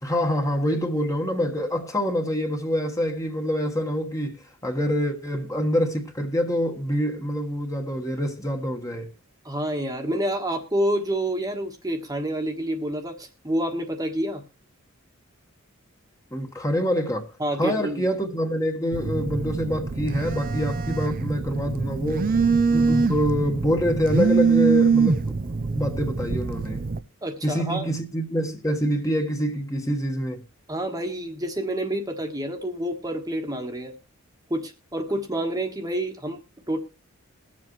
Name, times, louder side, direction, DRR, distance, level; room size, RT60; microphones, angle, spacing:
voice 1, 0.0-9.1 16.3-17.3 17.6-22.3 22.7-26.8 27.4-30.4, equal, 15° left, 1.3 m, -26 dB
voice 2, 9.4-14.4 17.4-18.0 27.2-27.9 30.7-33.9 34.5-36.4 36.7-36.8, right 1 dB, 15° right, 1.3 m, -28 dB
Telephone, 18.9-27.0, right 5 dB, 40° right, 0.5 m, -24 dB
21.5 x 7.5 x 3.1 m
head